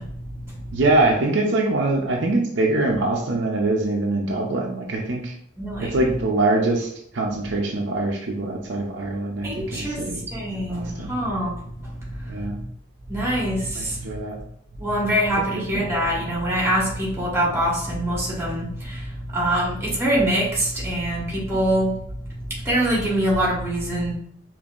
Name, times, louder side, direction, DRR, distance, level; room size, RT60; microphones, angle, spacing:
voice 1, 0.0-0.8 5.6-6.1 9.4-12.7 13.1-14.1 14.3-14.4 14.7-24.1, right 1 dB, 15° right, -5 dB, 1.3 m, -25 dB
voice 2, 0.7-5.3 5.8-10.3 10.5-11.1 12.3-12.6 13.8-14.4 15.5-15.9, right 2 dB, 70° right, 0 dB, 0.6 m, -23 dB
5.3 x 2.6 x 2.5 m, 0.69 s
head